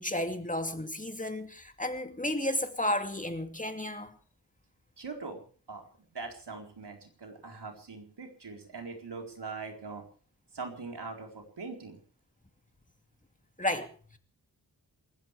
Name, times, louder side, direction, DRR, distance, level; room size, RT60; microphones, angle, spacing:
voice 1, 0.0-4.2 13.6-14.2, left 1 dB, 20° left, 2.6 m, -33 dB
voice 2, 5.0-5.4 5.7-10.0 10.5-12.0, right 4 dB, 85° right, 4.3 m, -42 dB
28.0 x 14.5 x 3.4 m
wide cardioid pair, 65°, 40 cm